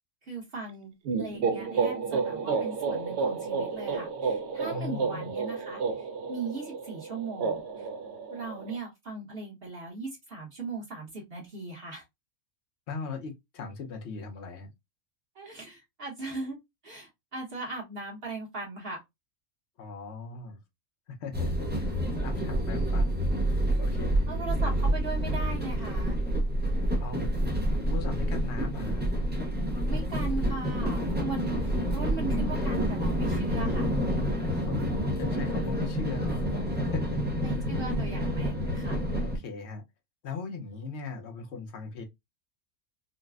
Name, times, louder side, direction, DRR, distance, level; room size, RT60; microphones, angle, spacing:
voice 1, 0.2-5.8 6.3-7.9 8.3-12.0 15.3-16.6 16.8-19.0 24.3-26.1 29.9-33.9 37.4-39.0, right 3 dB, 45° right, 1.2 m, -38 dB
sound 1, 1.0-8.8, right 5 dB, 65° right, 0.7 m, -31 dB
voice 2, 4.7-5.3 12.9-14.7 19.8-20.6 21.1-21.9 22.2-23.2 23.6-24.2 27.0-27.3 27.9-29.1 34.4-34.8 35.1-36.4 36.7-37.2 37.6-37.7 39.2-39.8 40.2-42.0, left 4 dB, 60° left, 1.0 m, -39 dB
sound 2, 21.3-39.4, equal, 15° right, 0.4 m, -28 dB
4.0 x 2.1 x 2.3 m
omnidirectional pair, 1.4 m